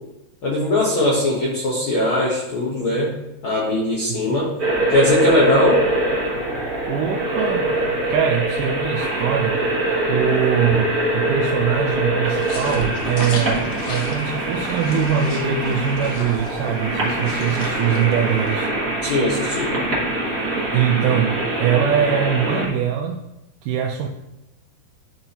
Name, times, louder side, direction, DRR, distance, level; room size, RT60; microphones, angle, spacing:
voice 1, 0.4-3.1 3.4-4.5 4.9-5.8 19.0-19.7, left 1 dB, 80° left, -5 dB, 1.1 m, -20 dB
voice 2, 4.1-4.4 6.9-9.7 10.1-18.7 20.7-23.2 23.6-24.1, right 8 dB, 80° right, 1 dB, 2.0 m, -22 dB
sound 1, 4.6-22.7, right 1 dB, 45° right, 1.0 m, -23 dB
sound 2, 12.2-18.5, left 2 dB, 60° left, 1.7 m, -35 dB
12.0 x 4.1 x 2.9 m, 0.92 s
omnidirectional pair, 4.0 m